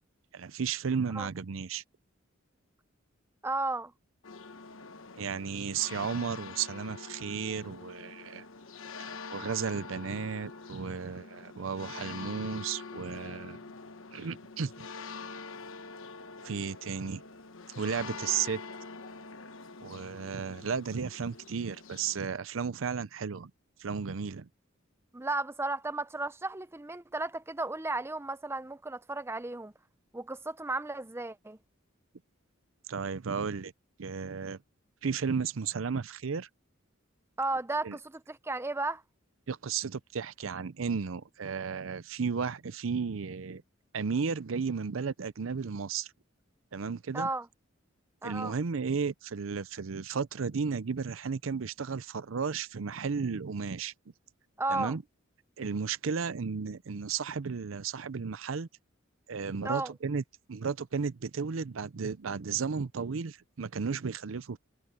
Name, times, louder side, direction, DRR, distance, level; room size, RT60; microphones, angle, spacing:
voice 1, 0.3-1.8 5.2-8.5 9.0-13.6 14.1-14.7 16.4-17.2 17.8-18.6 19.8-23.5 23.8-24.5 32.9-33.7 34.0-34.6 35.0-36.5 37.8-38.0 39.5-43.6 43.9-46.1 46.7-47.3 48.2-53.9 54.7-55.0 55.6-58.7 59.3-60.2 60.5-64.6, right 5 dB, 80° right, 0.6 m, -34 dB
voice 2, 3.4-3.9 25.1-29.7 30.1-31.6 37.4-39.0 47.1-47.5 48.2-48.5 54.6-54.9 59.6-59.9, right 2 dB, 15° right, 0.6 m, -34 dB
sound 1, 4.2-22.2, left 4 dB, 85° left, 1.1 m, -45 dB
head